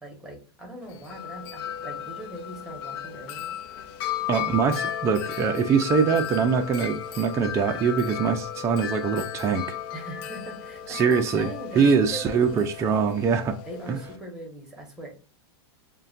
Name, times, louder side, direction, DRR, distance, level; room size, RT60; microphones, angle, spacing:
voice 1, 0.0-3.5 9.9-12.7 13.6-15.1, right 1 dB, 5° right, 1.2 m, -41 dB
Wind chime, 0.8-14.2, left 10 dB, 55° left, 0.5 m, -35 dB
voice 2, 4.3-9.7 10.9-13.6 13.9-14.0, right 6 dB, 20° right, 0.4 m, -23 dB
6.5 x 2.2 x 2.5 m
supercardioid pair, 135°, 14 cm